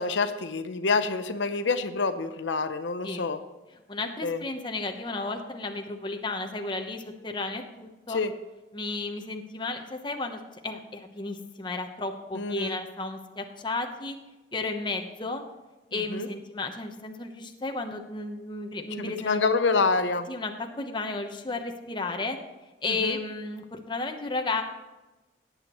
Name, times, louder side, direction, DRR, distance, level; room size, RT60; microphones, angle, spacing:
voice 1, 0.0-3.4 4.2-4.4 8.1-8.3 12.3-12.8 15.9-16.3 19.0-20.3 23.0-23.2, left 4 dB, 80° left, 9 dB, 0.7 m, -27 dB
voice 2, 3.9-8.2 8.7-14.2 14.5-15.4 15.9-19.4 20.3-22.4 22.8-24.6, left 3 dB, 25° left, 4 dB, 0.9 m, -33 dB
18.0 x 8.0 x 3.1 m, 1.1 s
head